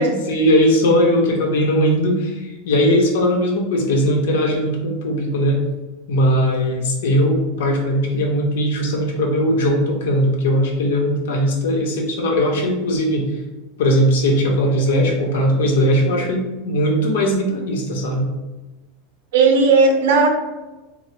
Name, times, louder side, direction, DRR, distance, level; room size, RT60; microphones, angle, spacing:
voice 1, 0.0-5.6 6.1-13.3 13.8-18.3, equal, 85° left, 1 dB, 0.9 m, -19 dB
voice 2, 19.3-20.3, right 4 dB, 80° right, 4 dB, 0.7 m, -15 dB
3.9 x 2.1 x 4.4 m, 1.1 s
supercardioid pair, 145°, 0 cm